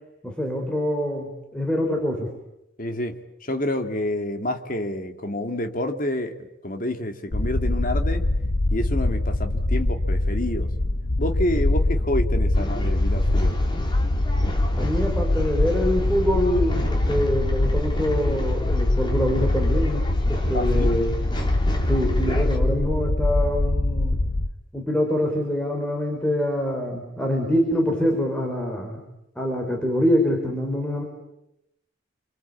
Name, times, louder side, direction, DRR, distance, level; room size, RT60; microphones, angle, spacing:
voice 1, 0.2-2.3 14.8-21.1 21.8-24.2 24.7-29.0 29.4-31.0, equal, 5° left, 1 dB, 3.9 m, -25 dB
voice 2, 2.8-6.4 6.6-8.3 8.7-10.7 11.2-13.6 20.5-21.0, left 1 dB, 45° left, 6 dB, 2.3 m, -28 dB
sound 1, 7.3-24.5, left 1 dB, 80° left, 1.3 m, -23 dB
Male speech man speaking / Chatter / Rattle, 12.5-22.6, equal, 25° left, 3.4 m, -34 dB
27.5 x 24.5 x 8.5 m, 0.86 s
head